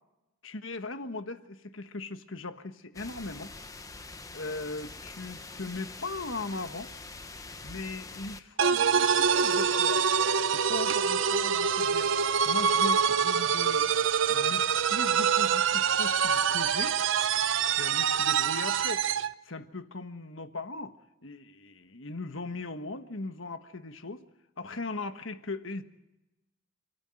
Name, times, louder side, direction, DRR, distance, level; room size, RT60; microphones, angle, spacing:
voice 1, 0.4-3.5 4.3-6.9 7.6-10.1 10.5-12.1 12.4-13.9 14.3-17.0 17.7-19.1 19.4-21.0 21.2-24.2 24.6-25.8, left 3 dB, 65° left, 9 dB, 1.4 m, -38 dB
sound 1, 2.9-8.4, left 3 dB, 15° left, 1.0 m, -44 dB
sound 2, 8.6-19.3, right 7 dB, 65° right, 0.6 m, -25 dB
29.5 x 13.5 x 7.7 m, 0.97 s
head